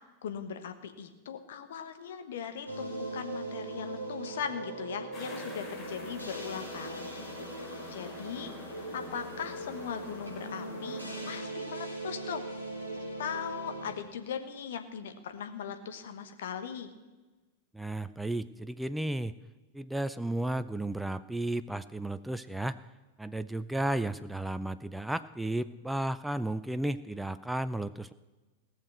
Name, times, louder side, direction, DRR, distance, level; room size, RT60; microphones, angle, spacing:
voice 1, 0.2-7.3 7.9-8.5 8.9-12.5 13.2-16.9, left 7 dB, 60° left, 8 dB, 1.3 m, -39 dB
sound 1, 2.7-13.9, right 2 dB, 85° left, 2.8 m, -40 dB
sound 2, 5.1-11.4, left 3 dB, 30° left, 3.9 m, -46 dB
voice 2, 17.7-19.3 19.7-22.8 23.2-28.1, right 1 dB, 5° right, 13 dB, 0.4 m, -33 dB
17.5 x 6.6 x 7.9 m, 1.2 s
figure-of-eight pair, 90°, 0 cm